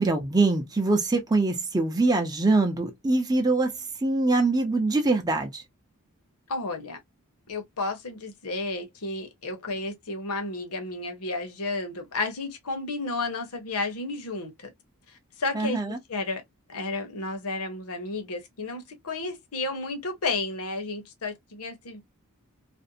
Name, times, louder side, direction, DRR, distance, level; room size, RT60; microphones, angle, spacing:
voice 1, 0.0-5.6 15.5-16.0, right 3 dB, 15° right, 0.5 m, -24 dB
voice 2, 6.5-7.0 7.5-14.7 15.4-16.4 16.7-22.0, left 3 dB, 70° left, 0.9 m, -32 dB
2.5 x 2.1 x 2.6 m
head